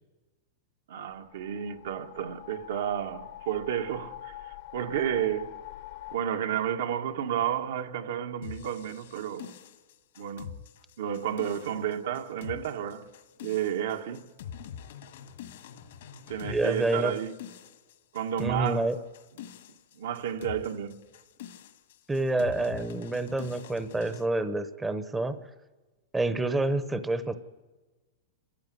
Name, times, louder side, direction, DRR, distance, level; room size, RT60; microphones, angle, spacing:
voice 1, 0.9-5.6 6.1-9.5 10.2-10.5 11.0-13.1 13.4-14.3 16.3-17.3 18.1-18.9 19.9-21.0, right 9 dB, 70° right, 1.6 m, -31 dB
sound 1, 1.1-6.2, left 15 dB, 55° left, 1.1 m, -45 dB
sound 2, 8.4-24.3, left 8 dB, 70° left, 2.0 m, -45 dB
voice 2, 16.5-17.1 18.4-19.0 22.1-25.4 26.1-27.3, right 2 dB, 10° right, 0.9 m, -28 dB
29.5 x 14.0 x 9.5 m
supercardioid pair, 150°, 0 cm